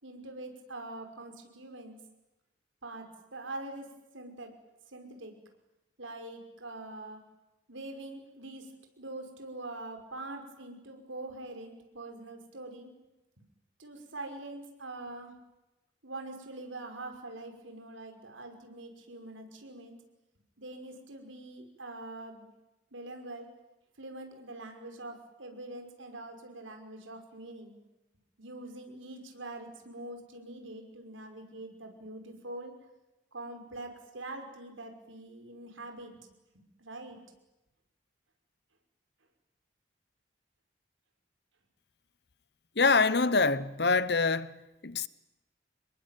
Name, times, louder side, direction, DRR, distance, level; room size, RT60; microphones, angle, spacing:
voice 1, 0.0-2.0 2.8-4.6 4.9-5.4 6.0-7.2 7.7-8.7 9.0-12.9 13.4-13.5 13.8-15.3 16.0-20.0 20.6-22.5 22.9-23.5 24.0-27.7 28.4-32.8 33.3-36.3 36.8-37.2, right 2 dB, 85° right, 5.6 m, -44 dB
voice 2, 42.8-45.1, left 4 dB, 55° left, 1.0 m, -25 dB
28.0 x 22.0 x 9.3 m
head